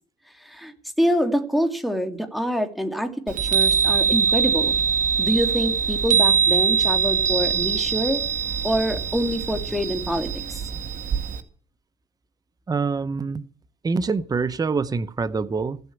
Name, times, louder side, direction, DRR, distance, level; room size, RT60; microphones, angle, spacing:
voice 1, 0.4-4.8 5.2-8.2 8.6-10.6, equal, ahead, 6 dB, 2.4 m, -25 dB
Chime, 3.3-11.4, right 6 dB, 50° right, 1.9 m, -23 dB
voice 2, 12.7-13.4 13.8-15.8, right 4 dB, 20° right, 13 dB, 0.9 m, -25 dB
16.0 x 8.0 x 8.7 m, 0.43 s
cardioid pair, 110°, 17 cm